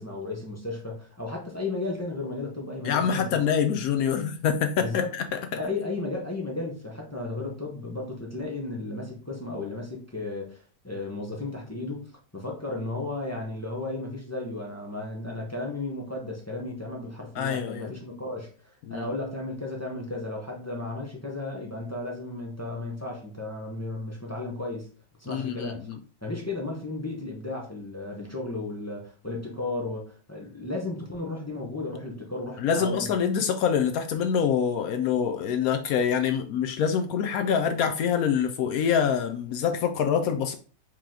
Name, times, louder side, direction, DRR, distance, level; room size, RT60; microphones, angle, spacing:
voice 1, 0.0-3.4 4.8-5.1 5.5-18.5 18.9-24.9 25.2-25.9 26.2-33.1, left 2 dB, 15° left, 0.6 m, -34 dB
voice 2, 2.8-5.2 17.4-17.9 18.9-19.1 25.3-26.0 32.6-40.5, left 7 dB, 70° left, 0.9 m, -25 dB
4.7 x 3.0 x 3.7 m
omnidirectional pair, 1.8 m